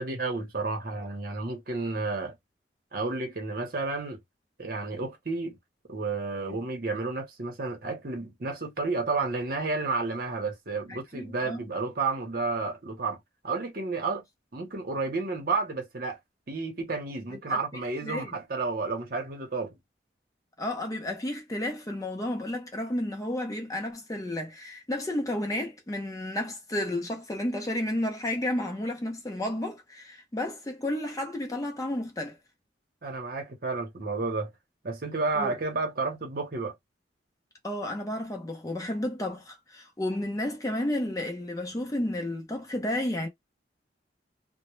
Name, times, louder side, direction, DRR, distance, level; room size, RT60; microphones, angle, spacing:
voice 1, 0.0-2.4 2.9-4.2 4.6-5.6 5.9-13.2 13.4-14.2 14.5-16.2 16.5-19.7 33.0-34.5 34.8-36.7, right 3 dB, 55° right, 0.8 m, -31 dB
voice 2, 10.9-11.6 17.3-17.6 18.0-18.3 20.6-32.4 35.4-35.6 37.6-43.3, left 1 dB, 20° left, 0.5 m, -32 dB
2.1 x 2.1 x 3.0 m
head